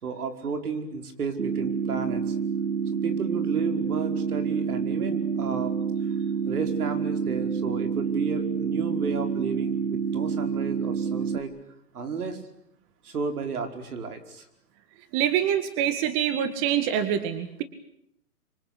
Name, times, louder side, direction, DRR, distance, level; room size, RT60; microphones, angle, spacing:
voice 1, 0.0-2.4 2.9-5.8 6.5-11.5 11.9-12.4 13.0-14.5, right 5 dB, 75° right, 7 dB, 5.2 m, -32 dB
sound 1, 1.4-11.4, right 6 dB, 90° right, 2.6 m, -28 dB
voice 2, 15.1-17.6, right 10 dB, 25° right, 10 dB, 2.0 m, -25 dB
26.5 x 25.0 x 8.6 m, 0.72 s
hypercardioid pair, 145°, 46 cm